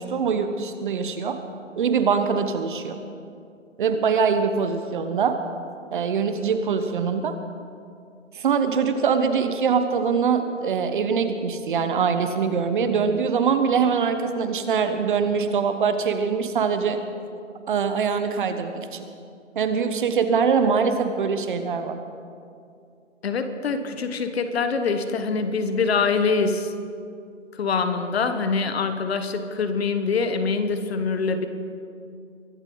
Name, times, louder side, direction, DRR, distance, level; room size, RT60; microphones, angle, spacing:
voice 1, 0.0-1.4 1.8-3.0 3.8-5.4 5.9-7.4 8.3-17.0 17.7-19.0 19.5-22.0, right 6 dB, 40° right, 8 dB, 1.0 m, -23 dB
voice 2, 23.2-26.7 27.5-31.5, left 4 dB, 50° left, 9 dB, 1.3 m, -24 dB
23.0 x 12.5 x 3.9 m, 2.4 s
hypercardioid pair, 150°, 39 cm